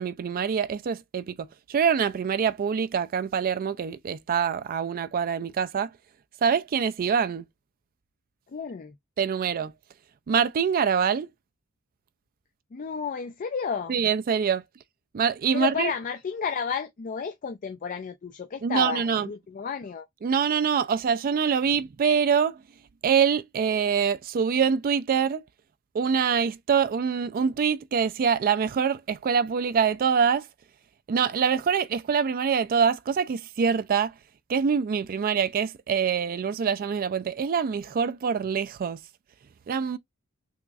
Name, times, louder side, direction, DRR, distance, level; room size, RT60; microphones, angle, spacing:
voice 1, 0.0-5.9 6.4-7.4 9.2-9.7 10.3-11.3 13.9-14.6 15.1-15.9 18.6-19.3 20.2-22.6 23.0-25.4 25.9-30.5 31.1-34.1 34.5-39.0 39.7-40.0, right 6 dB, 40° right, 0.3 m, -25 dB
voice 2, 8.5-8.9 12.7-13.9 15.5-20.1, left 6 dB, 35° left, 0.4 m, -32 dB
3.6 x 3.0 x 2.3 m
head